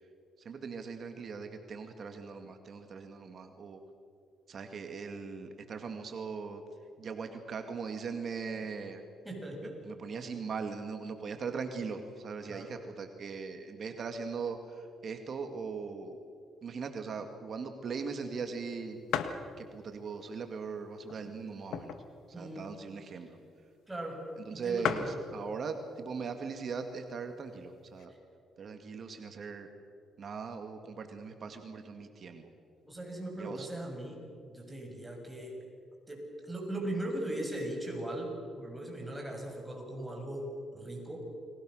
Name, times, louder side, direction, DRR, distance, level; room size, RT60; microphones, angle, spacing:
voice 1, 0.4-3.8 4.5-6.6 7.0-9.0 9.6-16.2 16.6-19.0 19.6-22.0 22.3-23.4 24.4-28.1 28.6-29.7 30.2-32.5 33.4-33.7, right 5 dB, 50° right, 6 dB, 2.2 m, -40 dB
voice 2, 9.2-9.8 12.5-12.7 22.3-22.7 23.9-24.2 24.5-25.2 28.1-28.2 32.8-34.2 34.5-35.6 36.1-41.2, right 1 dB, 10° right, 1 dB, 7.0 m, -39 dB
sound 1, 18.1-18.2 18.6-18.7 19.1-19.5 20.1-20.2 21.0-22.2 22.6-22.7 22.8-23.1 23.8-23.9 24.2-24.3 24.5-24.6 24.8-25.2 26.1-26.4 27.0-27.1 27.3-28.1, left 8 dB, 80° left, 1.7 m, -35 dB
30.0 x 24.0 x 6.5 m, 2.4 s
cardioid pair, 90°, 0 cm